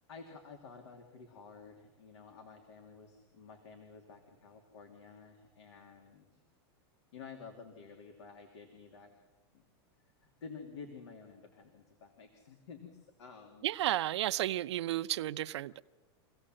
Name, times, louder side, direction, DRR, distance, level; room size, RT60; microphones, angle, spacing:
voice 1, 0.1-6.4 7.1-9.1 9.5-9.6 10.2-13.7, left 5 dB, 85° left, 2.9 m, -51 dB
voice 2, 13.6-15.8, right 13 dB, 80° right, 0.7 m, -33 dB
25.5 x 17.0 x 7.7 m
supercardioid pair, 150°, 14 cm